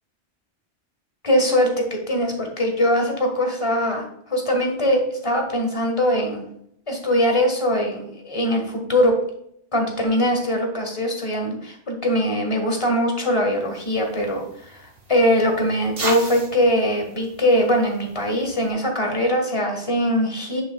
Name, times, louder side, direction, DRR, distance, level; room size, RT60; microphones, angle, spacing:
voice 1, 1.2-6.4 6.9-9.1 9.7-20.6, equal, 25° left, 2 dB, 1.6 m, -22 dB
sound 1, 13.6-18.7, right 2 dB, 85° right, 2.0 m, -36 dB
8.0 x 6.6 x 2.3 m, 0.70 s
omnidirectional pair, 1.2 m